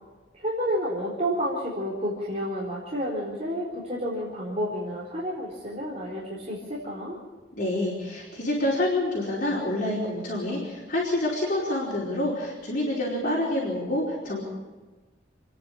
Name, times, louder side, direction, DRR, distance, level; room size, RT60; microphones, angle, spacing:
voice 1, 0.3-7.2, equal, 35° right, -5 dB, 4.2 m, -30 dB
voice 2, 7.5-14.4, left 1 dB, 50° left, -5 dB, 4.8 m, -27 dB
29.0 x 10.5 x 8.5 m, 1.3 s
head